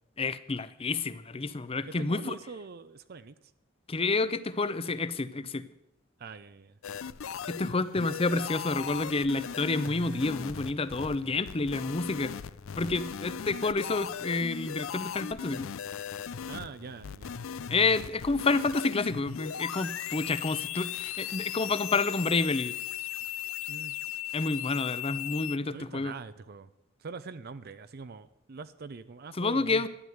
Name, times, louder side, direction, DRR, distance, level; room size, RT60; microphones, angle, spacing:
voice 1, 0.2-2.4 3.9-5.6 7.5-12.3 12.7-15.7 17.7-22.8 24.3-26.1 29.4-29.9, left 3 dB, 30° left, 15 dB, 0.6 m, -29 dB
voice 2, 1.8-3.3 5.4-5.5 6.2-6.8 16.5-17.4 23.7-23.9 25.7-26.7 27.0-29.9, right 4 dB, 50° right, 13 dB, 0.5 m, -43 dB
sound 1, 6.8-25.6, left 9 dB, 85° left, 0.5 m, -38 dB
12.5 x 9.5 x 8.0 m, 0.84 s
head